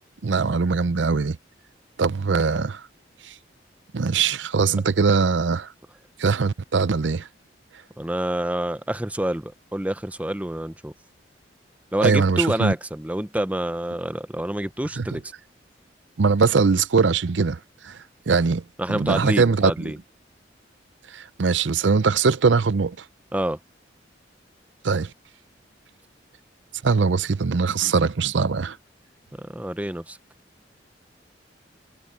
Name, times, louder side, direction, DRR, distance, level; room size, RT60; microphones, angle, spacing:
voice 1, 0.2-1.4 2.0-2.8 3.3-3.4 3.9-5.7 6.2-7.3 12.0-12.7 15.0-15.1 16.2-17.6 17.8-18.0 18.3-18.6 18.9-19.9 21.1-23.0 24.8-25.1 26.8-28.8, right 4 dB, 80° right, 0.6 m, -21 dB
voice 2, 8.0-10.9 11.9-15.3 18.8-20.0 23.3-23.6 29.4-30.2, right 1 dB, 10° right, 0.6 m, -27 dB
head